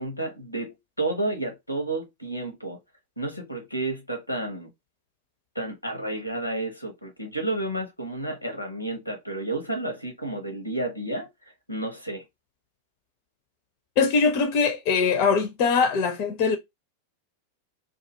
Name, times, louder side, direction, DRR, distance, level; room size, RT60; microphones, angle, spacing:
voice 1, 0.0-2.8 3.2-4.7 5.6-11.3 11.7-12.2, right 2 dB, 85° left, 0.7 m, -31 dB
voice 2, 14.0-16.6, left 5 dB, 45° left, 0.5 m, -22 dB
2.3 x 2.2 x 2.8 m
figure-of-eight pair, 90°, 0 cm